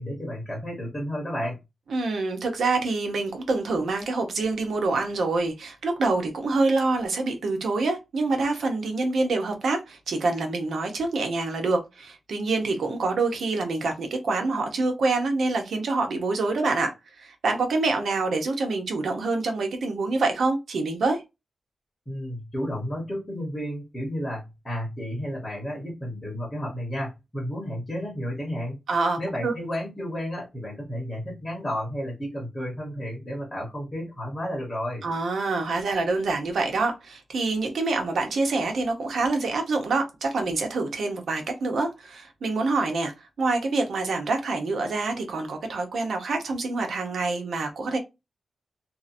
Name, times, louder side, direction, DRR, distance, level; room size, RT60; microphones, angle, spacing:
voice 1, 0.0-1.6 22.1-28.8 29.2-35.0, equal, 15° left, 1.2 m, -32 dB
voice 2, 1.9-21.2 28.9-29.5 35.0-43.1 43.4-48.0, right 3 dB, 80° right, 0.8 m, -26 dB
2.8 x 2.4 x 2.6 m
wide cardioid pair, 120°, 0 cm